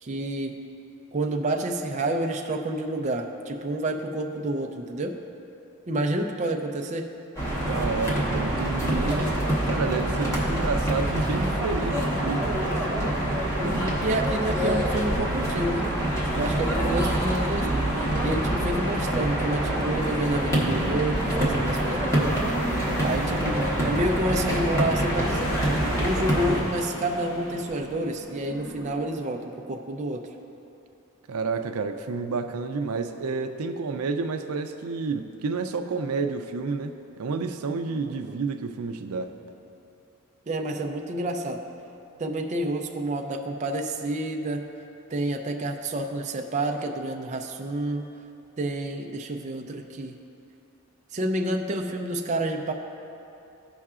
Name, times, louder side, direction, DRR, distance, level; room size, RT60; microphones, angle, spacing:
voice 1, 0.0-0.6 1.1-5.1 5.9-7.1 13.6-15.9 16.4-22.4 23.0-30.3 38.1-38.5 40.5-41.6 42.2-44.7 45.1-48.1 48.6-50.2 51.1-52.7, right 1 dB, 35° right, 3 dB, 0.4 m, -29 dB
sound 1, 7.4-26.6, right 1 dB, 15° left, 1.2 m, -26 dB
voice 2, 7.7-9.4 9.7-12.7 31.3-39.3, right 4 dB, 85° right, 7 dB, 0.5 m, -30 dB
sound 2, 25.1-29.4, left 1 dB, 70° left, 0.9 m, -40 dB
15.0 x 5.5 x 2.4 m, 2.8 s
head